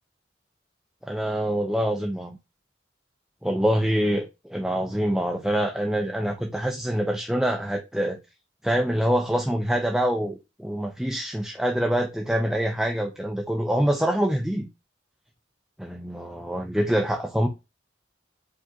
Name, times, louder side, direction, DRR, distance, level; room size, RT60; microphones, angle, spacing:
voice 1, 1.0-2.4 3.4-8.2 8.6-14.7 15.8-17.5, equal, 5° right, 0.4 m, -25 dB
5.1 x 2.5 x 3.6 m
head